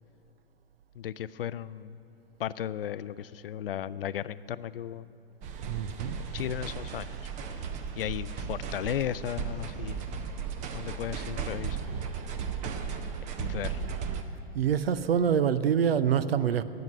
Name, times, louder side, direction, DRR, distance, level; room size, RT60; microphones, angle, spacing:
voice 1, 1.0-2.0 2.4-5.1 6.3-7.1 8.0-10.1 10.7-11.8 13.4-13.8, left 10 dB, 60° left, 17 dB, 0.4 m, -35 dB
sound 1, 5.4-14.2, right 6 dB, 25° right, 0.7 m, -35 dB
voice 2, 5.7-6.2 14.5-16.6, right 8 dB, 65° right, 15 dB, 0.6 m, -26 dB
10.5 x 8.0 x 9.6 m, 2.5 s
figure-of-eight pair, 115°, 32 cm